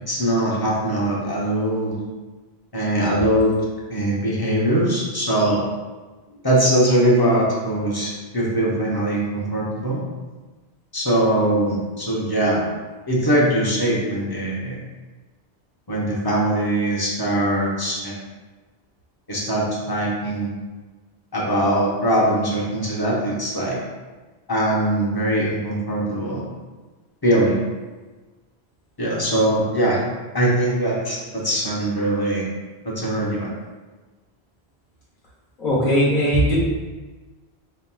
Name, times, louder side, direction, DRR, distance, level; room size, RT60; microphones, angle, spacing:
voice 1, 0.1-2.0 2.7-3.6 3.9-5.6 6.4-10.0 10.9-12.6 13.1-14.8 15.9-18.2 19.3-20.5 21.3-23.8 24.5-26.5 27.2-27.6 29.0-30.0 30.3-32.5 32.8-33.5, right 1 dB, 25° left, -4 dB, 0.7 m, -21 dB
voice 2, 35.6-36.6, equal, 50° left, -6 dB, 1.1 m, -18 dB
5.2 x 2.9 x 2.2 m, 1.3 s
omnidirectional pair, 1.1 m